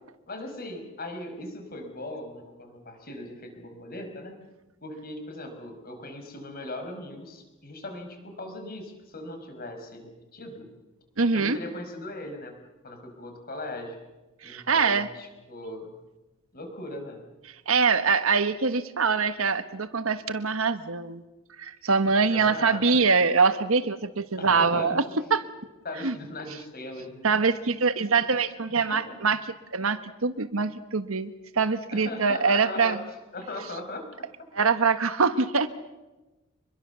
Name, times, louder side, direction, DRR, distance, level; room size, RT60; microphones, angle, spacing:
voice 1, 0.3-4.3 4.8-10.7 11.3-12.6 12.8-14.0 14.4-15.9 16.5-17.2 22.2-23.0 24.4-25.0 25.8-27.3 28.9-29.2 31.9-33.0 33.3-34.1, left 2 dB, 45° left, 5 dB, 5.1 m, -39 dB
voice 2, 11.2-11.6 14.4-15.1 17.7-21.2 21.6-25.0 25.3-25.4 26.0-26.1 27.2-33.0 34.5-35.7, right 4 dB, 80° right, 11 dB, 1.4 m, -24 dB
25.5 x 22.0 x 7.0 m, 1.1 s
head